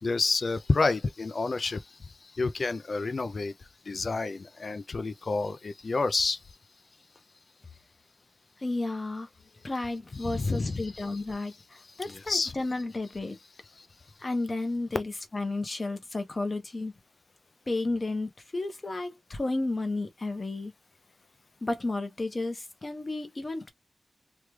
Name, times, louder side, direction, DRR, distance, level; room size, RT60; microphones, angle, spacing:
voice 1, 0.0-3.5 3.9-6.4 10.2-11.2 12.0-12.6 13.8-13.9, left 3 dB, 50° left, 0.4 m, -29 dB
voice 2, 8.6-9.3 9.6-13.4 14.2-16.9 17.7-20.7 21.6-23.7, left 2 dB, 35° left, 0.9 m, -32 dB
3.2 x 2.3 x 3.1 m
wide cardioid pair, 110°, 0 cm